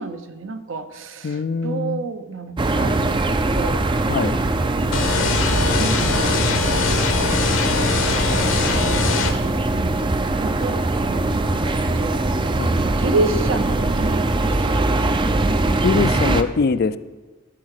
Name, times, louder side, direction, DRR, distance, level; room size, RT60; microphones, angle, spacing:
voice 1, 0.0-3.2 3.5-4.0 5.8-6.5 9.3-10.0 10.4-12.2 12.6-15.2, right 3 dB, 70° right, 9 dB, 0.8 m, -30 dB
voice 2, 1.2-2.1 4.1-4.4 12.6-12.8 15.8-17.0, left 4 dB, 50° left, 15 dB, 0.4 m, -22 dB
sound 1, 2.6-16.4, right 2 dB, 25° right, 0.5 m, -21 dB
sound 2, 4.9-9.3, left 4 dB, 70° left, 1.1 m, -22 dB
13.5 x 4.9 x 6.5 m, 1.3 s
head